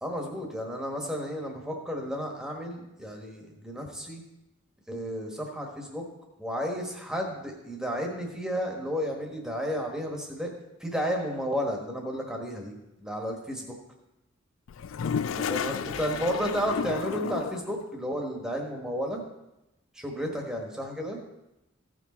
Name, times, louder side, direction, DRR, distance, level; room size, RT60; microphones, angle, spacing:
voice 1, 0.0-4.2 4.9-6.0 6.4-10.5 10.8-12.7 13.0-13.7 15.3-19.2 19.9-21.2, equal, 5° right, 1 dB, 1.4 m, -32 dB
Toilet flush, 14.7-17.8, left 7 dB, 85° left, 0.4 m, -32 dB
15.5 x 6.1 x 4.3 m, 0.92 s
head